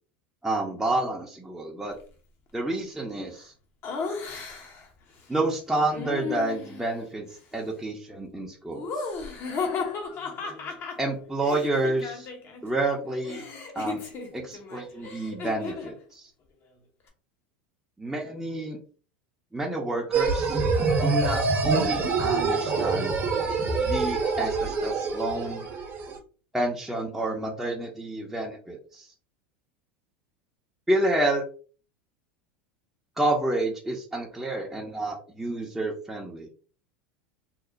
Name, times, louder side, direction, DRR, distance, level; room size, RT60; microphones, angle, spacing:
voice 1, 0.4-2.0 2.5-3.5 5.3-7.3 7.5-9.0 11.0-12.3 12.6-13.5 13.7-14.0 14.3-16.3 18.0-18.8 19.5-20.6 21.0-23.1 23.8-25.7 26.5-29.1 30.9-31.4 33.2-36.5, right 2 dB, 5° right, -2 dB, 0.6 m, -29 dB
Laughter, 3.8-4.9 5.9-6.9 8.7-12.6 12.9-16.0, left 4 dB, 45° left, 0.8 m, -35 dB
sound 1, 20.1-26.1, right 4 dB, 40° right, 0.7 m, -25 dB
2.9 x 2.0 x 2.5 m, 0.39 s
hypercardioid pair, 85°, 6 cm